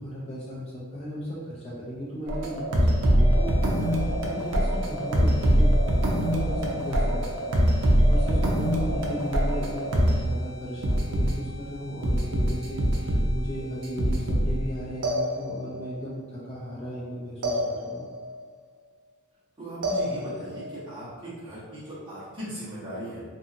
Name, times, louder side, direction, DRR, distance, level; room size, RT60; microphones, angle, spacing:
voice 1, 0.0-3.5 3.8-5.7 6.1-18.1, equal, 30° left, -7 dB, 0.4 m, -36 dB
sound 1, 2.3-10.2 10.8-11.3 12.0-13.4 13.8-14.6 15.0-15.8 17.4-18.2 19.8-20.6, equal, 75° right, 0.5 m, -23 dB
sound 2, 3.0-16.9, left 1 dB, 10° left, 1.3 m, -48 dB
voice 2, 19.6-23.2, right 1 dB, 20° right, -10 dB, 1.0 m, -38 dB
2.7 x 2.6 x 2.5 m, 1.5 s
head